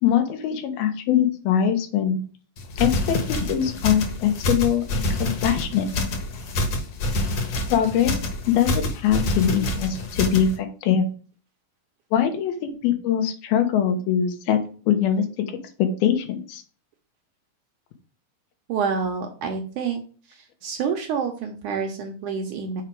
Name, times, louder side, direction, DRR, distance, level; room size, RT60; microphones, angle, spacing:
voice 1, 0.0-2.2 2.8-5.9 7.7-8.2 8.5-11.1 12.1-14.6 14.9-15.2 15.8-16.6, left 9 dB, 85° left, 6 dB, 2.9 m, -22 dB
sound 1, 2.6-10.6, left 1 dB, 55° left, 2.1 m, -27 dB
voice 2, 18.7-20.0 20.6-22.8, right 6 dB, 70° right, 4 dB, 2.0 m, -27 dB
6.5 x 4.9 x 4.5 m, 0.39 s
omnidirectional pair, 4.3 m